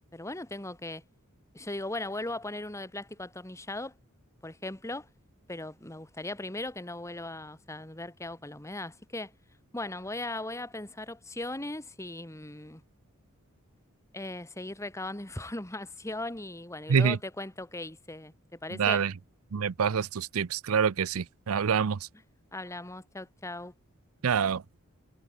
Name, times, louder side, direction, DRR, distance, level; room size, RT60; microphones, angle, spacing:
voice 1, 0.1-1.0 1.5-3.9 4.4-5.1 5.5-9.3 9.7-12.8 14.1-18.3 18.6-19.0 22.5-23.7, left 2 dB, 15° left, 1.7 m, -38 dB
voice 2, 18.7-19.1 19.5-22.1 24.2-24.6, right 6 dB, 70° right, 0.5 m, -26 dB
head